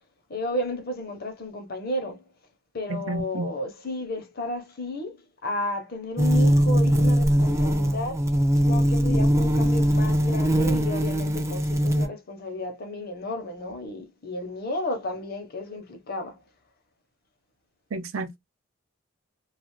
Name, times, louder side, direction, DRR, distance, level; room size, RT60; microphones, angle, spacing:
voice 1, 0.3-2.2 2.7-8.3 8.5-16.4, left 1 dB, 50° left, 0.8 m, -33 dB
voice 2, 2.9-3.5 17.9-18.4, right 2 dB, 80° right, 0.5 m, -31 dB
sound 1, 6.2-12.1, equal, 15° right, 0.4 m, -21 dB
2.5 x 2.4 x 3.0 m
head